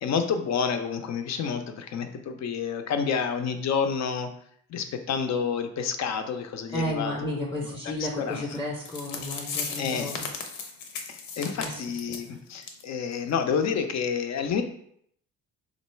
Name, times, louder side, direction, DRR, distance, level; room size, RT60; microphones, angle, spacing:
voice 1, 0.0-4.3 4.7-7.7 8.0-8.6 9.8-10.1 11.1-14.6, left 6 dB, 50° left, 7 dB, 0.5 m, -29 dB
voice 2, 6.7-10.3 11.5-11.8 12.1-12.2, left 1 dB, 10° left, -2 dB, 0.6 m, -32 dB
sound 1, 8.6-8.7 8.9-12.3 12.6-12.8 13.1-13.2 13.7-13.8, left 5 dB, 90° left, 0.8 m, -36 dB
3.1 x 2.5 x 4.4 m, 0.69 s
cardioid pair, 100°, 34 cm